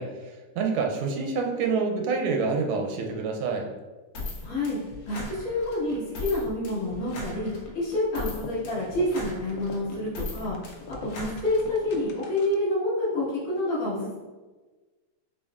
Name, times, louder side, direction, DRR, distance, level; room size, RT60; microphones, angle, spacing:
voice 1, 0.0-3.7, right 4 dB, 85° right, 2 dB, 1.5 m, -27 dB
sound 1, 4.1-12.0, left 2 dB, 65° left, 1.4 m, -39 dB
voice 2, 4.4-4.8 5.1-10.6 10.9-14.1, left 1 dB, 40° left, -10 dB, 1.8 m, -28 dB
sound 2, 8.2-12.8, left 5 dB, 80° left, 0.9 m, -45 dB
6.3 x 3.2 x 2.4 m, 1.3 s
omnidirectional pair, 2.4 m